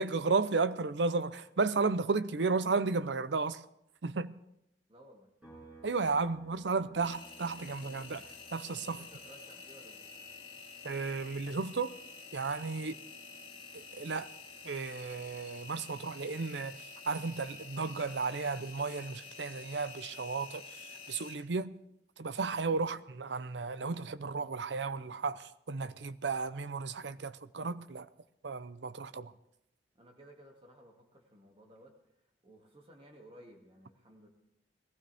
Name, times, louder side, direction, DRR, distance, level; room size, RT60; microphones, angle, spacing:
voice 1, 0.0-3.6 4.0-4.3 5.8-9.0 10.8-12.0 12.3-13.0 13.7-14.3 14.6-21.7 22.2-28.1 28.4-29.3, right 4 dB, 80° right, 0.7 m, -34 dB
voice 2, 4.9-5.3 8.9-10.0 12.7-12.9 29.9-34.3, equal, 30° right, 2.3 m, -57 dB
sound 1, 5.4-19.0 19.3-21.5, right 2 dB, 5° right, 6.1 m, -62 dB
Engine, 7.0-21.3, left 5 dB, 30° left, 2.2 m, -49 dB
20.5 x 15.0 x 3.5 m
head